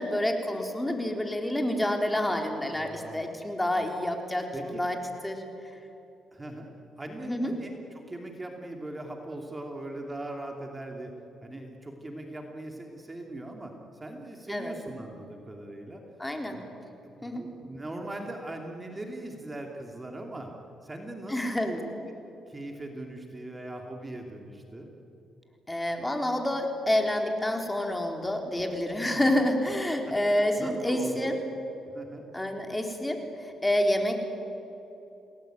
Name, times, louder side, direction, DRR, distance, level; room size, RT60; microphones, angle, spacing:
voice 1, 0.0-5.0 5.2-5.4 7.2-7.5 14.5-14.7 16.2-16.6 17.2-17.4 21.3-21.7 25.7-31.4 32.3-34.2, left 1 dB, 10° left, 3 dB, 3.8 m, -28 dB
voice 2, 2.7-3.3 4.5-4.8 6.3-6.7 7.0-11.1 11.4-13.7 14.0-16.0 16.5-16.6 17.0-20.5 20.8-22.1 22.5-24.9 29.0-29.3 30.1-30.2 30.6-31.5 31.9-32.3, right 1 dB, 20° right, 2 dB, 2.9 m, -40 dB
29.0 x 19.5 x 9.2 m, 2.9 s
cardioid pair, 90°, 0 cm